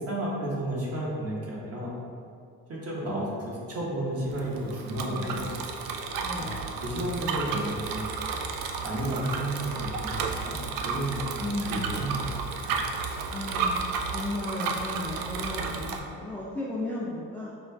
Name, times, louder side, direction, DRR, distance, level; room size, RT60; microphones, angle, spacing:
voice 1, 0.1-1.9 2.7-5.4 6.4-8.0 8.8-10.1 10.4-11.2 11.7-12.2 12.7-12.8, right 1 dB, 35° right, -5 dB, 1.1 m, -32 dB
Bicycle, 4.2-16.0, right 5 dB, 60° right, 0.5 m, -32 dB
voice 2, 6.2-6.7 11.4-12.0 13.3-17.5, left 2 dB, 5° left, -7 dB, 0.4 m, -35 dB
5.2 x 2.3 x 2.2 m, 2.3 s
supercardioid pair, 75°, 40 cm